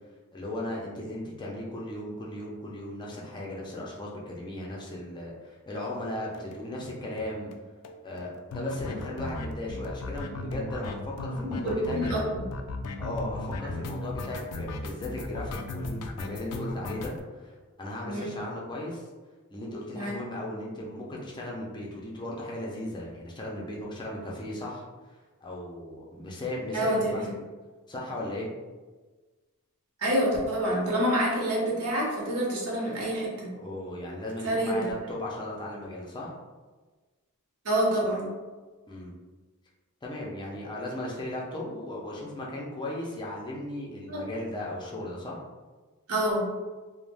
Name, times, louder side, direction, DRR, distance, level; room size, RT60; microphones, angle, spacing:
voice 1, 0.3-7.5 8.0-12.2 13.0-17.5 17.8-19.1 19.5-24.8 25.4-27.2 27.9-28.5 33.6-36.3 38.9-39.1 40.0-45.4, left 1 dB, 20° left, -3 dB, 0.5 m, -36 dB
sound 1, 6.3-6.6 6.8-6.9 7.2-7.3 7.5-7.6 7.8-17.2, left 2 dB, 85° left, 0.3 m, -36 dB
voice 2, 11.3-12.2 18.0-18.3 19.9-20.1 26.7-27.3 30.0-33.5 34.4-34.8 37.6-38.3 44.1-44.2 46.1-46.4, right 1 dB, 80° right, -3 dB, 0.8 m, -27 dB
2.4 x 2.0 x 3.2 m, 1.3 s
head